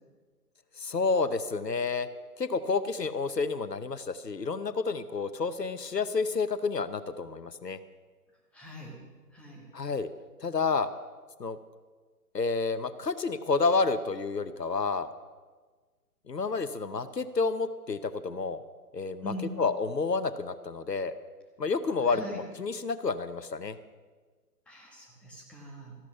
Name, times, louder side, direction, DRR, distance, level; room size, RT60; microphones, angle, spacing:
voice 1, 0.8-2.1 2.4-7.8 9.7-10.1 10.4-10.9 11.4-11.6 12.3-15.1 16.3-18.6 18.9-21.1 21.6-23.8, left 4 dB, 85° left, 13 dB, 0.9 m, -30 dB
voice 2, 8.5-9.0 9.3-9.7 19.2-19.6 22.0-22.4 24.7-26.0, equal, ahead, -2 dB, 1.3 m, -42 dB
14.0 x 12.0 x 5.7 m, 1.4 s
figure-of-eight pair, 135°, 48 cm